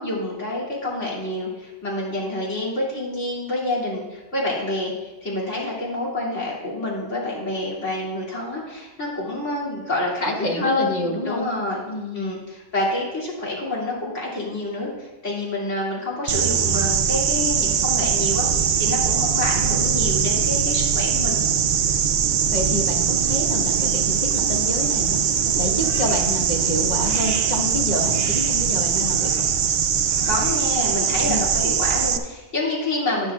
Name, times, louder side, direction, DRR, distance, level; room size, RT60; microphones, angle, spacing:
voice 1, 0.0-4.9 5.2-10.3 10.6-11.8 12.1-21.4 30.2-33.3, left 2 dB, 65° left, -5 dB, 3.0 m, -27 dB
voice 2, 10.2-11.4 11.8-12.3 22.5-25.2 25.6-29.5 31.3-31.5, left 1 dB, 35° left, 0 dB, 1.4 m, -28 dB
sound 1, 16.3-32.2, right 7 dB, 70° right, 0.4 m, -21 dB
sound 2, 23.7-30.6, right 1 dB, 20° right, 1.8 m, -40 dB
12.0 x 10.0 x 2.4 m, 1.2 s
omnidirectional pair, 1.3 m